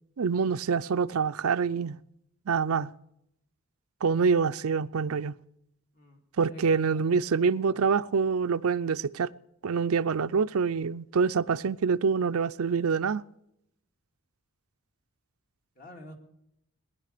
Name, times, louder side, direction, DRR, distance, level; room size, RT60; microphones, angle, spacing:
voice 1, 0.2-2.0 2.5-2.9 4.0-5.3 6.4-9.3 9.6-13.2, right 5 dB, 85° right, 0.5 m, -26 dB
voice 2, 6.5-7.2 7.7-7.8 15.8-16.1, equal, 40° left, 2.7 m, -48 dB
19.0 x 11.0 x 6.7 m
head